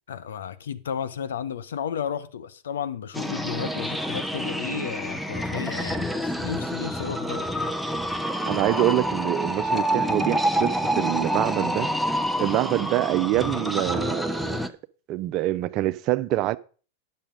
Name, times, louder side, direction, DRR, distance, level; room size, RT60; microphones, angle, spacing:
voice 1, 0.1-7.5, left 8 dB, 75° left, 0.7 m, -33 dB
sound 1, 3.1-14.7, equal, ahead, 0.7 m, -27 dB
voice 2, 8.5-11.9 12.4-14.6 15.1-16.6, right 15 dB, 45° right, 0.5 m, -25 dB
9.6 x 7.1 x 5.1 m
hypercardioid pair, 100°, 0 cm